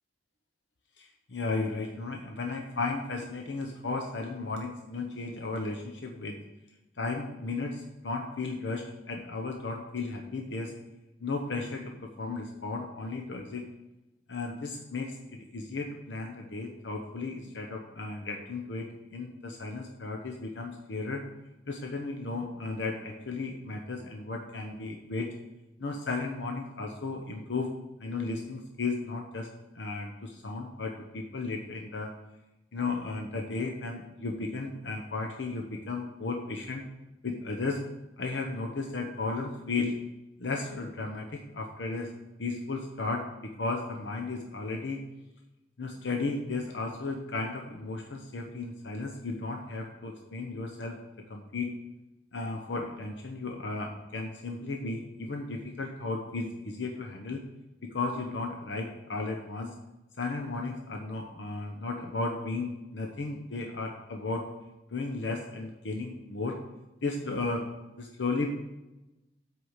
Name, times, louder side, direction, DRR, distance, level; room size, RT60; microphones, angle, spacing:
voice 1, 1.0-6.4 7.0-10.7 11.2-13.6 14.3-21.2 21.7-25.3 25.8-27.7 28.0-29.5 29.7-32.1 32.7-36.9 37.2-37.8 38.2-39.9 40.4-42.1 42.4-45.0 45.8-51.0 51.3-51.7 52.3-57.4 57.8-59.7 60.2-64.4 64.9-66.6 67.0-67.6 68.0-68.5, left 3 dB, 85° left, 2 dB, 0.9 m, -34 dB
8.0 x 4.8 x 7.2 m, 0.99 s
head